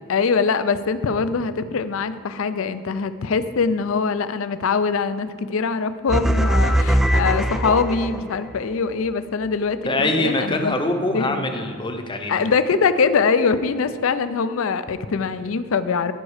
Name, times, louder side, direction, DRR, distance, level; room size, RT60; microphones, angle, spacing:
voice 1, 0.0-10.7 11.1-11.5 12.3-16.1, left 5 dB, 65° left, 13 dB, 0.4 m, -23 dB
sound 1, 6.1-8.5, right 1 dB, ahead, 0.3 m, -20 dB
voice 2, 9.8-12.4, left 1 dB, 20° left, 5 dB, 0.7 m, -24 dB
13.5 x 5.3 x 4.9 m, 2.1 s
head